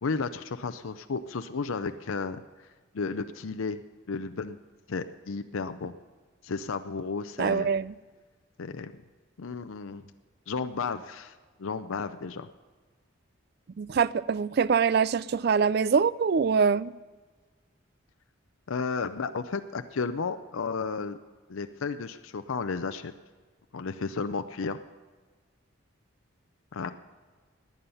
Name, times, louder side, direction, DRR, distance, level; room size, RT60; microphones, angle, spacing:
voice 1, 0.0-2.4 2.9-3.8 4.1-4.6 4.9-5.9 6.4-7.7 8.6-8.9 9.4-10.0 10.5-12.5 18.7-21.2 21.5-23.1 23.7-24.8 26.7-26.9, left 4 dB, 80° left, 0.6 m, -33 dB
voice 2, 7.4-7.9 13.8-16.9, right 6 dB, 50° right, 0.3 m, -24 dB
18.0 x 9.4 x 5.6 m
head